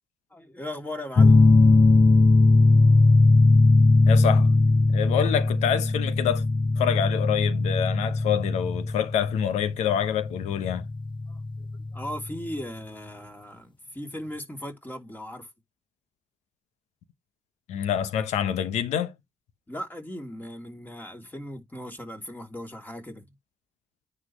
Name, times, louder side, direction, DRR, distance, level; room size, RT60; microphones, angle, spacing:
voice 1, 0.3-1.4 11.3-11.7 11.9-15.5 19.7-23.2, left 1 dB, 15° left, 3.1 m, -38 dB
sound 1, 1.2-12.4, left 3 dB, 45° left, 0.9 m, -19 dB
voice 2, 4.1-4.5 4.9-6.4 6.8-10.8 17.7-19.1, left 9 dB, 80° left, 1.0 m, -26 dB
9.5 x 5.8 x 3.2 m
supercardioid pair, 55°, 12 cm